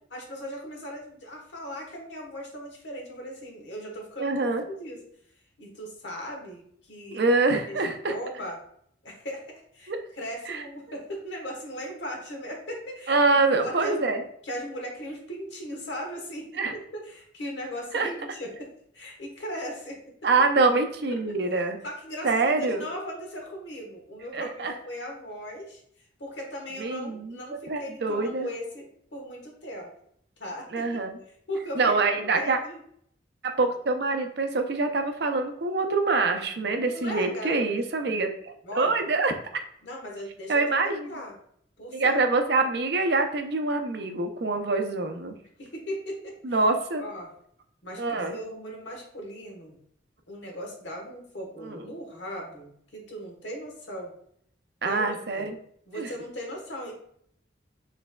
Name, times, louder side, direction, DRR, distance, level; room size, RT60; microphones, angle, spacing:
voice 1, 0.1-4.3 4.7-5.0 5.6-6.6 6.9-7.2 7.7-7.8 8.1-8.6 9.0-9.4 9.7-13.2 13.6-14.1 14.4-16.5 16.7-18.7 18.9-20.0 21.8-25.8 26.2-28.8 29.1-29.9 30.4-30.8 31.5-32.8 36.9-37.7 38.6-39.0 39.8-40.6 40.9-41.3 41.8-42.2 45.6-46.3 47.0-47.3 47.8-48.0 48.3-49.8 50.3-54.1 54.8-55.5 55.9-56.9, equal, 75° left, 1 dB, 1.2 m, -38 dB
voice 2, 4.2-4.6 7.1-8.2 9.9-10.0 10.5-10.6 13.1-14.2 16.6-16.7 17.9-18.1 20.2-21.8 22.2-22.8 24.3-24.7 26.7-27.4 27.7-28.5 30.7-31.2 31.8-32.6 33.4-39.3 40.5-41.1 41.9-45.4 46.4-47.0 47.9-48.4 51.6-51.9 54.8-55.6 56.0-56.1, right 3 dB, 60° right, 6 dB, 0.5 m, -25 dB
6.5 x 3.3 x 2.2 m, 0.67 s
head